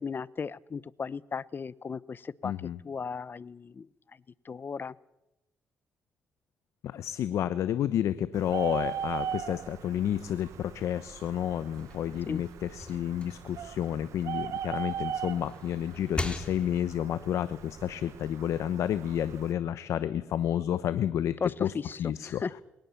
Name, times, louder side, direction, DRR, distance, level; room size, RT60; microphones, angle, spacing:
voice 1, 0.0-2.5 2.8-3.9 4.4-4.9 12.3-12.4 21.4-22.5, left 5 dB, 40° left, 20 dB, 0.8 m, -35 dB
voice 2, 2.4-2.8 6.8-22.4, left 10 dB, 75° left, 14 dB, 0.9 m, -30 dB
Bird, 8.3-19.5, right 9 dB, 80° right, 1.4 m, -39 dB
sound 1, 11.6-14.8 15.3-17.1, left 2 dB, 20° left, 3.1 m, -40 dB
22.0 x 18.5 x 7.1 m, 0.95 s
supercardioid pair, 70°, 5 cm